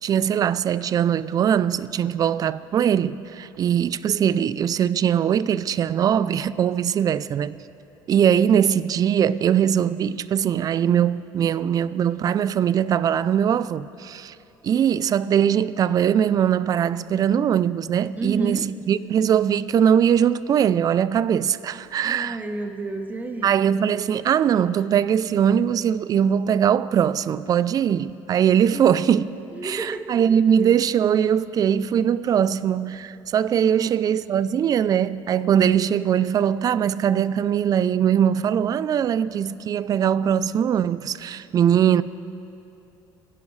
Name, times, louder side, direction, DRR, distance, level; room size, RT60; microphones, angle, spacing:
voice 1, 0.0-7.6 8.1-14.3 14.6-22.4 23.4-29.3 29.6-42.0, right 9 dB, 40° right, 0.4 m, -21 dB
voice 2, 18.2-18.7 22.0-23.5 28.7-28.9 29.5-30.3 33.6-34.0, right 3 dB, 15° right, 0.8 m, -31 dB
22.5 x 11.0 x 3.2 m
supercardioid pair, 95°, 10 cm